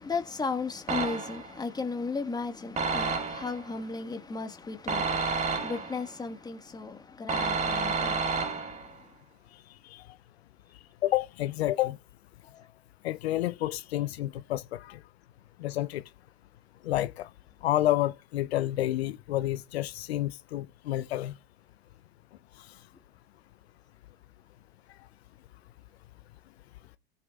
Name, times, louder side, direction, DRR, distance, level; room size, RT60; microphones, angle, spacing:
voice 1, 0.0-8.5, left 4 dB, 10° left, 1.6 m, -35 dB
sound 1, 0.9-1.6 2.8-3.7 4.9-6.1 7.3-8.9, right 4 dB, 20° right, 1.7 m, -30 dB
voice 2, 11.0-12.0 13.0-15.0 15.6-16.0 16.8-17.3 17.6-21.4, left 14 dB, 75° left, 0.6 m, -29 dB
16.0 x 8.5 x 2.4 m
hypercardioid pair, 105°, 32 cm